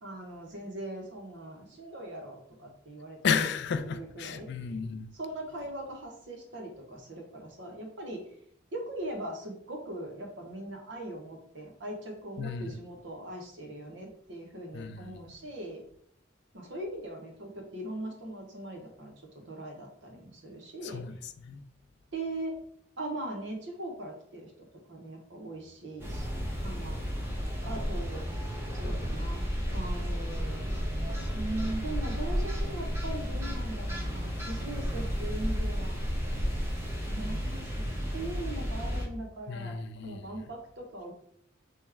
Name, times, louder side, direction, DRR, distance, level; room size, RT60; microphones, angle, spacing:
voice 1, 0.0-3.4 3.8-4.5 5.1-8.2 8.7-15.8 16.5-19.1 19.5-21.0 22.1-22.5 23.0-24.5 24.9-26.3 26.6-27.0 27.6-29.4 29.7-30.7 31.3-36.0 37.1-39.8 40.0-41.1, right 1 dB, 65° right, 0.9 m, -40 dB
voice 2, 3.2-5.1 12.4-12.7 14.7-15.1 20.8-21.1 21.4-21.6 39.5-40.4, left 6 dB, 60° left, 0.4 m, -33 dB
sound 1, 26.0-39.0, equal, 15° right, 0.8 m, -32 dB
3.5 x 3.0 x 3.4 m
head